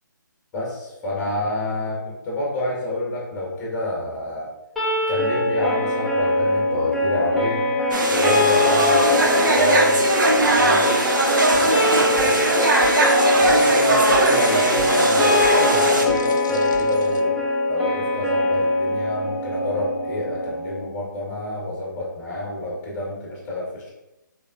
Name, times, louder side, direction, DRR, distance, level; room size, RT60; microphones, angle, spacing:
voice 1, 0.5-4.5 5.1-7.6 8.1-10.9 11.5-12.4 13.4-23.9, left 1 dB, 15° left, -4 dB, 1.3 m, -28 dB
sound 1, 4.8-20.8, left 2 dB, ahead, 0.5 m, -22 dB
sound 2, 7.9-16.1, right 2 dB, 75° right, 0.8 m, -20 dB
Bicycle, 11.5-17.2, left 3 dB, 65° left, 0.5 m, -38 dB
4.0 x 3.5 x 2.6 m, 0.96 s
hypercardioid pair, 150°, 11 cm